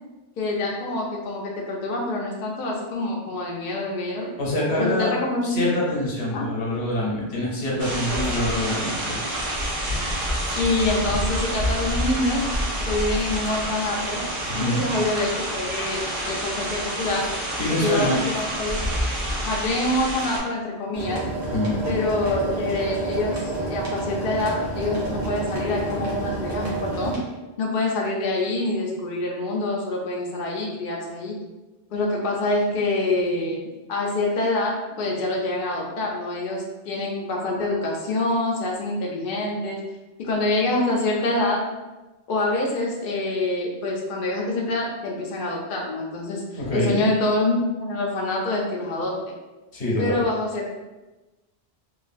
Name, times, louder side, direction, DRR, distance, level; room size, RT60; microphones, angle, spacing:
voice 1, 0.4-4.3 4.8-5.6 6.3-6.5 8.1-8.2 10.6-12.4 12.9-14.2 14.5-17.3 17.8-18.8 19.4-21.3 21.9-27.2 27.6-31.4 31.9-33.6 33.9-39.8 40.2-41.7 42.3-46.4 46.7-49.1 50.0-50.7, left 2 dB, 60° left, -2 dB, 0.6 m, -26 dB
voice 2, 4.4-5.1 5.4-9.2 14.6-14.8 17.6-18.2 21.5-21.9 46.6-47.0 49.7-50.2, left 1 dB, 80° left, -4 dB, 1.1 m, -25 dB
sound 1, 7.8-20.4, equal, 55° right, 0.8 m, -28 dB
sound 2, 20.9-27.2, right 2 dB, 85° right, 1.1 m, -29 dB
3.0 x 2.4 x 2.5 m, 1.1 s
omnidirectional pair, 1.1 m